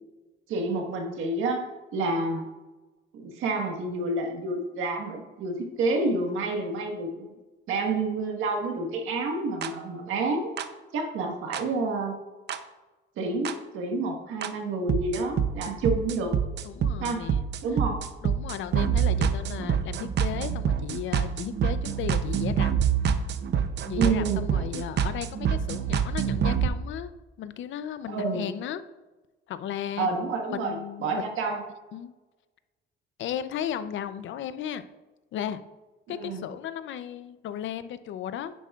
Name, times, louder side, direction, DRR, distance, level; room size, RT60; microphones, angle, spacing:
voice 1, 0.5-2.5 3.1-7.3 7.7-10.5 10.9-12.2 13.2-16.4 17.0-17.3 17.6-18.1 23.9-24.6 28.1-28.5 30.0-30.8 31.0-31.6 36.1-36.4, right 3 dB, 85° right, 2 dB, 1.5 m, -29 dB
sound 1, 9.6-9.7 10.6-10.7 11.5-11.6 12.5-12.6 13.5-13.6 14.4-14.5 14.9-26.7, right 7 dB, 60° right, 0.6 m, -26 dB
voice 2, 16.6-17.4 18.2-22.7 23.9-27.1 27.4-28.8 29.5-30.1 30.5-31.3 31.9-32.1 33.2-34.8 35.3-35.6 36.1-38.5, left 10 dB, 75° left, 12 dB, 0.6 m, -35 dB
10.0 x 7.2 x 2.4 m, 1.2 s
cardioid pair, 90°, 20 cm